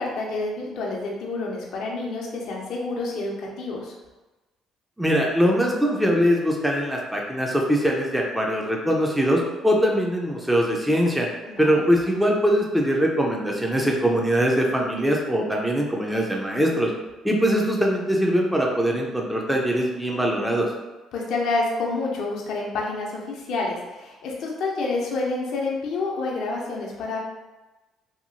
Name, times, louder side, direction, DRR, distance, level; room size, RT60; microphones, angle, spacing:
voice 1, 0.0-3.9 11.5-11.9 21.1-27.2, left 3 dB, 70° left, -2 dB, 0.6 m, -28 dB
voice 2, 5.0-11.3 11.6-16.9 17.2-20.7, equal, 5° right, -1 dB, 0.5 m, -22 dB
2.8 x 2.7 x 2.6 m, 1.1 s
supercardioid pair, 60°, 0 cm